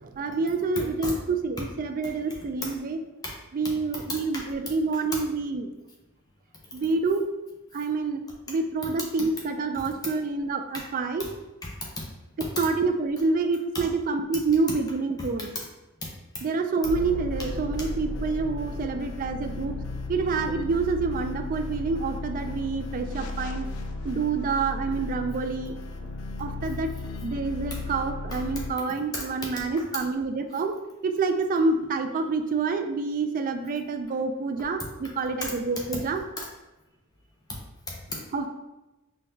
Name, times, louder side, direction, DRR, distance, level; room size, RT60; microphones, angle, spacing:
voice 1, 0.0-3.0 3.5-5.7 6.7-7.3 7.7-8.2 8.5-11.3 12.4-15.5 16.4-19.8 20.1-23.7 24.0-25.8 26.4-26.9 27.2-30.7 31.0-36.2 38.3-38.5, right 4 dB, 40° right, 7 dB, 0.3 m, -27 dB
voice 2, 11.6-12.1 12.4-12.5 16.0-16.4 27.7-27.8 28.6-28.7 29.1-29.2 35.4-35.5 36.4-36.5 37.5-37.6 37.9-38.2, left 2 dB, 20° left, -3 dB, 0.5 m, -35 dB
sound 1, 16.8-28.7, left 2 dB, 75° left, 0.4 m, -35 dB
5.3 x 2.2 x 2.7 m, 1.0 s
head